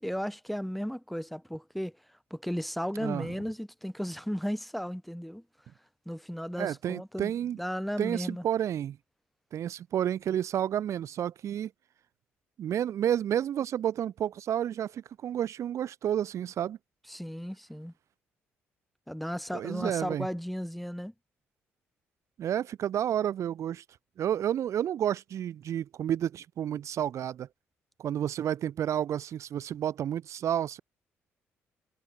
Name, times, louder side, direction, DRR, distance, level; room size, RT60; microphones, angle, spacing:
voice 1, 0.0-1.9 2.3-5.4 6.0-7.3 7.6-8.4 17.1-17.9 19.1-21.1, equal, ahead, 6.7 m, -35 dB
voice 2, 6.6-7.6 8.0-9.0 9.5-11.7 12.6-16.8 19.5-20.3 22.4-23.8 24.2-27.5 28.0-30.8, right 10 dB, 65° right, 5.2 m, -30 dB
supercardioid pair, 55°, 5 cm